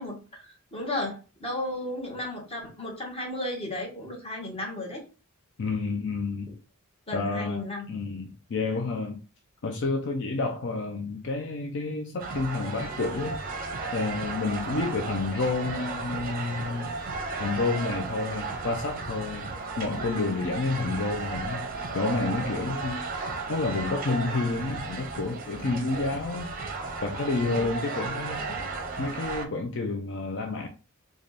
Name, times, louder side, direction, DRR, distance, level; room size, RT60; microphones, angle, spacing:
voice 1, 0.0-5.0 7.1-7.9 27.5-28.6, left 1 dB, 25° left, 1.2 m, -35 dB
voice 2, 5.6-6.5 7.1-9.2 9.6-13.4 13.9-16.9 17.4-19.5 19.8-21.7 21.9-26.5 27.0-28.4 29.0-30.7, left 3 dB, 55° left, 0.5 m, -30 dB
sound 1, 12.2-29.5, right 3 dB, 40° right, 0.6 m, -34 dB
3.3 x 2.4 x 4.0 m
head